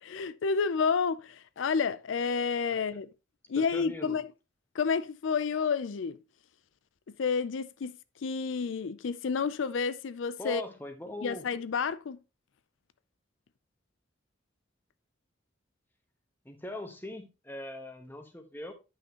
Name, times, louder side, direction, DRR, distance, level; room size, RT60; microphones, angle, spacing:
voice 1, 0.0-3.1 3.5-4.2 4.7-6.2 7.2-7.9 8.2-10.6 11.2-12.2, left 5 dB, 80° left, 0.4 m, -30 dB
voice 2, 3.5-4.2 10.4-11.4 16.4-18.7, left 1 dB, 10° left, 1.1 m, -41 dB
9.6 x 5.8 x 2.9 m
head